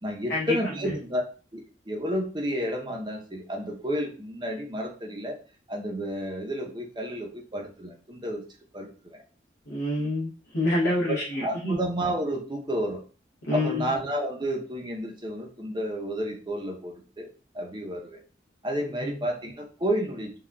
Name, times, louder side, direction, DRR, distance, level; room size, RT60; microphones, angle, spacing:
voice 1, 0.0-1.2 1.5-5.4 5.7-8.4 8.7-9.2 10.9-13.0 13.5-17.3 17.5-18.2 18.6-20.3, equal, 25° right, 1 dB, 0.6 m, -31 dB
voice 2, 9.7-11.8 13.5-13.8 19.0-19.1, left 1 dB, 80° left, -5 dB, 0.7 m, -27 dB
3.7 x 2.2 x 2.2 m, 0.37 s
head